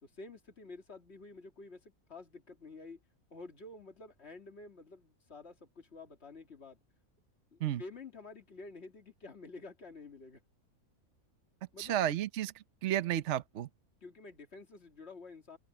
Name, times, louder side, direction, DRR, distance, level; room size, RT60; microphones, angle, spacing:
voice 1, 0.0-3.0 3.3-6.8 7.5-10.4 11.7-12.0 14.0-15.6, left 3 dB, 50° left, 2.7 m, -50 dB
voice 2, 11.8-13.7, right 11 dB, 60° right, 1.0 m, -32 dB
open air
omnidirectional pair, 1.5 m